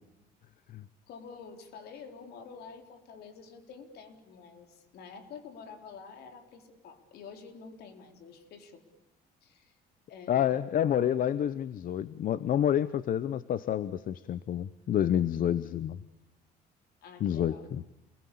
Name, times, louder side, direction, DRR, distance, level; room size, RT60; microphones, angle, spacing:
voice 1, 1.1-8.8 9.4-9.8 10.1-10.6 17.0-17.7, left 5 dB, 70° left, 6 dB, 4.2 m, -48 dB
voice 2, 10.3-16.0 17.2-17.8, left 10 dB, 55° left, 15 dB, 0.9 m, -28 dB
29.0 x 21.0 x 8.6 m, 0.89 s
cardioid pair, 110°, 17 cm